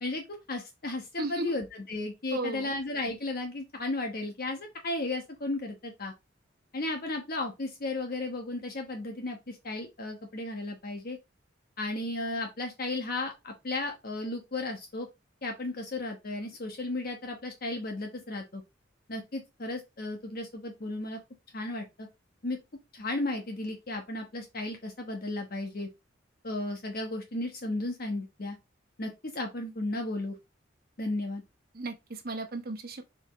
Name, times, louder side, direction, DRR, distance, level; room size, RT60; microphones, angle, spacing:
voice 1, 0.0-6.1 6.7-11.2 11.8-15.1 15.4-18.6 19.1-21.2 21.5-22.1 22.4-22.6 22.9-25.9 26.4-28.6 29.0-30.3 31.0-31.4, left 2 dB, 50° left, 1.2 m, -34 dB
voice 2, 1.2-1.5 2.3-2.7 31.7-33.0, right 2 dB, 50° right, 1.2 m, -35 dB
7.6 x 4.6 x 3.1 m
head